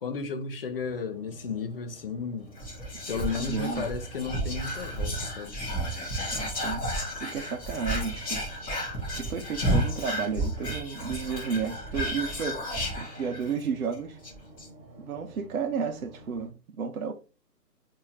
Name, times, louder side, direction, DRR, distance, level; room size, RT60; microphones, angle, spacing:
voice 1, 0.0-2.5 3.1-5.6, left 5 dB, 35° left, 0.6 m, -33 dB
sound 1, 0.7-16.5, right 2 dB, 25° right, 1.1 m, -50 dB
Whispering, 2.6-13.6 13.9-14.0 14.2-14.7, equal, 10° left, 0.9 m, -32 dB
voice 2, 3.4-3.9 6.3-6.8 7.2-8.4 9.1-12.6 13.0-14.2 15.0-17.1, right 6 dB, 60° right, 0.9 m, -32 dB
4.6 x 2.9 x 2.8 m
hypercardioid pair, 150°, 49 cm